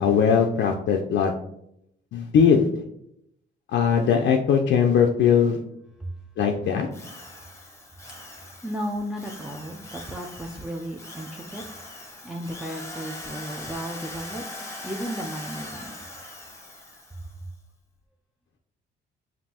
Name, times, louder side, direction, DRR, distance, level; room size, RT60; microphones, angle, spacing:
voice 1, 0.0-1.3 2.1-2.7 3.7-5.6 6.4-6.9, left 7 dB, 70° left, 2 dB, 0.5 m, -20 dB
Drill, 6.9-17.3, left 2 dB, 15° left, 0.9 m, -41 dB
voice 2, 8.3-11.6 11.9-14.4 14.8-16.1, equal, 5° right, -1 dB, 0.4 m, -34 dB
5.2 x 2.6 x 2.8 m, 0.77 s
cardioid pair, 90°, 20 cm